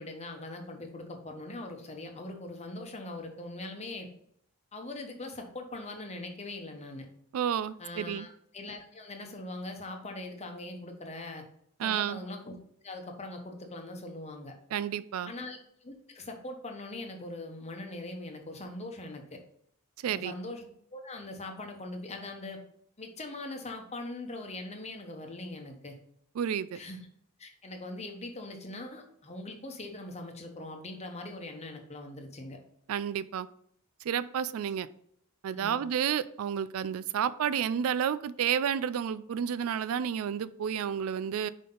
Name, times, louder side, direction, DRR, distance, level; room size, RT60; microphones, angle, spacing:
voice 1, 0.0-4.1 4.7-7.1 7.8-11.4 11.8-12.4 12.8-14.5 15.2-19.4 20.1-20.6 20.9-22.6 23.0-25.9 26.7-27.0 27.4-32.6 35.5-35.8, left 2 dB, 30° left, 3 dB, 1.0 m, -41 dB
voice 2, 7.3-8.3 11.8-12.2 14.7-15.3 20.0-20.3 26.4-26.8 32.9-33.5 34.0-34.9 35.4-41.5, right 8 dB, 70° right, 15 dB, 0.3 m, -31 dB
5.8 x 5.1 x 3.8 m, 0.68 s
head